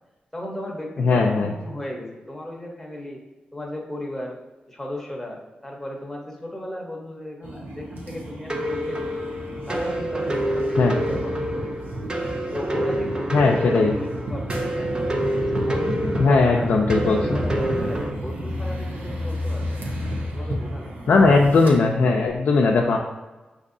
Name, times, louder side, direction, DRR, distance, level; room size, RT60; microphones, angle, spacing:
voice 1, 0.3-3.2 3.5-4.4 4.7-9.3 9.7-11.9 12.5-15.1 15.5-19.8 20.3-21.0, left 1 dB, 10° left, -1 dB, 0.9 m, -35 dB
voice 2, 1.0-1.5 10.8-10.9 13.3-13.9 16.2-17.2 21.1-23.0, left 3 dB, 75° left, 0 dB, 0.4 m, -18 dB
sound 1, 7.4-21.7, equal, 75° right, 0.8 m, -31 dB
sound 2, 8.5-18.1, right 1 dB, 25° right, 0.5 m, -28 dB
6.2 x 2.7 x 2.6 m, 1.2 s
wide cardioid pair, 95°, 3 cm